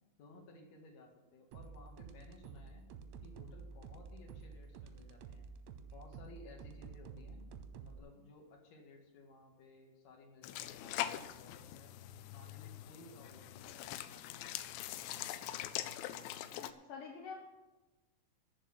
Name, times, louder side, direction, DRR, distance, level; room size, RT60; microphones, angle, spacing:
voice 1, 0.2-2.8 3.2-5.5 5.9-7.5 7.8-11.9 12.3-14.5, left 2 dB, 55° left, 1 dB, 2.1 m, -58 dB
sound 1, 1.5-8.0, right 5 dB, 80° right, 2.6 m, -51 dB
sound 2, 10.4-16.7, left 13 dB, 90° left, 2.5 m, -43 dB
voice 2, 16.6-17.4, left 6 dB, 75° left, -1 dB, 1.9 m, -47 dB
14.0 x 5.2 x 9.0 m, 1.2 s
omnidirectional pair, 5.9 m